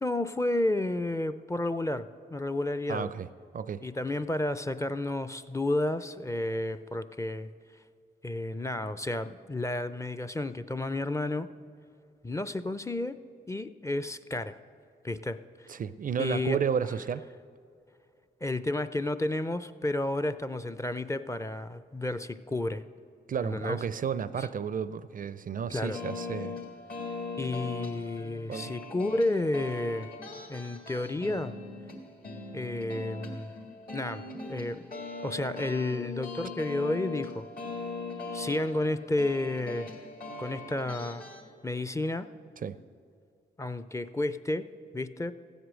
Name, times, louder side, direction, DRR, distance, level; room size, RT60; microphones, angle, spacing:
voice 1, 0.0-3.1 3.8-7.5 8.2-11.5 12.2-13.2 13.5-14.6 15.0-15.4 16.2-16.6 18.4-22.8 23.4-23.8 24.4-24.5 25.7-26.0 27.4-30.1 30.5-31.5 32.5-33.5 33.9-34.9 35.2-37.5 38.3-39.9 40.4-41.2 41.6-42.3 43.6-44.7 44.9-45.3, left 2 dB, 15° left, 12 dB, 0.5 m, -31 dB
voice 2, 2.9-3.3 3.5-3.8 15.7-17.2 23.3-26.5 28.5-28.7 42.6-42.8, right 7 dB, 50° right, 15 dB, 0.4 m, -32 dB
sound 1, 25.9-41.4, left 3 dB, 55° left, 1.9 m, -40 dB
15.5 x 8.0 x 6.3 m, 2.3 s
cardioid pair, 65°, 18 cm